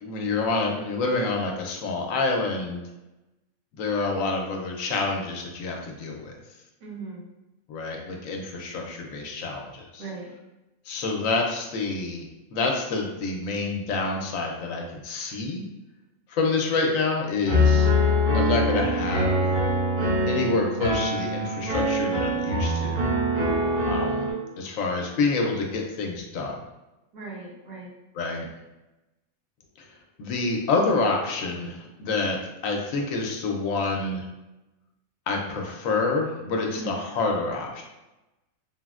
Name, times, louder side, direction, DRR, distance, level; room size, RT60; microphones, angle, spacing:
voice 1, 0.0-2.8 3.8-6.4 7.7-10.0 10.9-15.7 16.3-17.9 18.3-19.4 20.3-23.1 23.8-24.3 24.6-26.5 28.1-28.5 29.8-29.9 30.2-34.3 35.3-37.8, left 3 dB, 75° left, 1 dB, 0.9 m, -27 dB
voice 2, 6.8-7.2 10.0-10.3 27.1-27.9 36.7-36.9, right 4 dB, 90° right, -4 dB, 1.3 m, -38 dB
Piano, 17.5-24.3, left 1 dB, 45° right, 1.1 m, -23 dB
3.9 x 2.0 x 2.3 m, 1.0 s
omnidirectional pair, 1.4 m